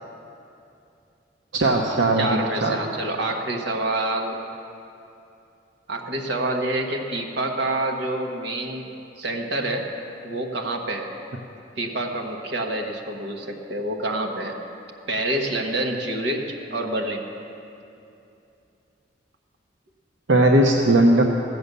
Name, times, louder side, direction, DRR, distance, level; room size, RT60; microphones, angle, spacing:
voice 1, 1.5-2.3 2.6-2.8 20.3-21.2, right 1 dB, 90° right, 0 dB, 0.9 m, -17 dB
voice 2, 2.2-4.4 5.9-8.9 9.2-9.9 10.2-11.1 11.8-14.6 15.1-17.2, right 1 dB, 70° right, 1 dB, 1.3 m, -27 dB
15.0 x 7.9 x 6.8 m, 2.7 s
head